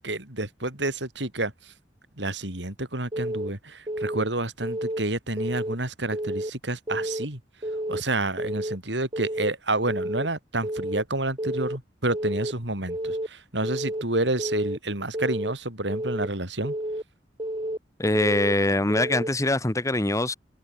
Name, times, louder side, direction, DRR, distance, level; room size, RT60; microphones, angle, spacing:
voice 1, 0.0-1.7 2.2-7.4 7.9-16.7, right 2 dB, 80° right, 6.2 m, -29 dB
Keyboard (musical) / Alarm, 3.1-3.5 3.9-4.2 4.6-5.0 5.4-5.8 6.1-6.5 6.9-7.3 7.6-8.0 8.4-8.8 9.1-9.5 9.9-10.3 10.6-11.0 11.4-11.8 12.1-12.5 12.9-13.3 13.6-14.0 14.4-14.8 15.1-15.5 15.9-16.3 16.6-17.0 17.4-17.8 18.1-18.5 18.9-19.3, right 1 dB, 30° right, 7.7 m, -30 dB
voice 2, 18.0-20.3, left 1 dB, 20° left, 1.3 m, -23 dB
head